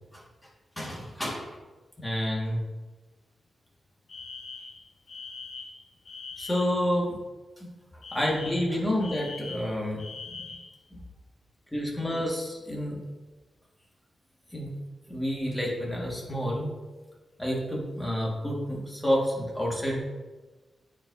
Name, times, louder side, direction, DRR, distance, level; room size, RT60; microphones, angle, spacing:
voice 1, 0.8-1.6 2.0-2.6 6.4-7.1 7.6-7.7 8.1-10.0 10.9-11.0 11.7-13.0 14.5-14.7 15.1-16.7 17.4-20.0, equal, 10° left, -3 dB, 1.7 m, -29 dB
Alarm, 4.1-6.8 8.0-10.7, left 4 dB, 70° left, 0.8 m, -42 dB
9.3 x 4.7 x 2.7 m, 1.2 s
wide cardioid pair, 105°, 0 cm